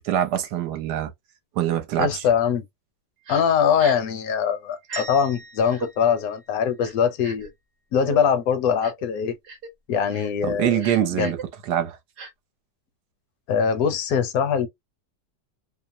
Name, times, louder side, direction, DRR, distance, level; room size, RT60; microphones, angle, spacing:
voice 1, 0.0-1.1 1.6-2.2 10.4-11.4 11.7-12.0, right 11 dB, 75° right, 1.2 m, -24 dB
voice 2, 2.0-2.6 3.3-7.5 7.9-9.3 9.9-10.7 11.1-11.3 13.5-14.7, left 7 dB, 70° left, 1.0 m, -22 dB
Crying sobbing, 3.3-3.4 3.8-4.1 4.8-5.0 5.7-5.9 6.8-7.5 8.0-8.2 8.8-9.1 9.4-9.7 10.1-10.3 10.8-11.4 12.2-12.3, right 4 dB, 55° right, 1.0 m, -36 dB
sound 1, 4.9-7.2, right 2 dB, 40° right, 0.6 m, -42 dB
2.9 x 2.1 x 2.5 m
omnidirectional pair, 1.9 m